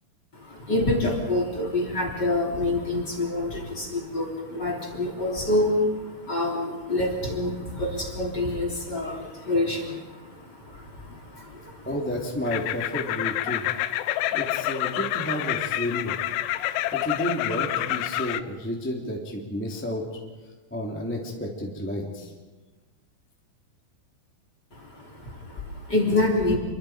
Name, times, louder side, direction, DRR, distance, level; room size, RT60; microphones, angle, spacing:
voice 1, 0.3-11.9 24.7-26.6, left 2 dB, 25° left, 1 dB, 3.5 m, -27 dB
voice 2, 11.8-13.6 14.3-16.2 16.9-20.0 20.7-22.3, equal, 5° left, -2 dB, 2.3 m, -31 dB
sound 1, 12.5-18.4, left 14 dB, 85° left, 3.3 m, -28 dB
29.0 x 24.0 x 5.2 m, 1.2 s
omnidirectional pair, 5.4 m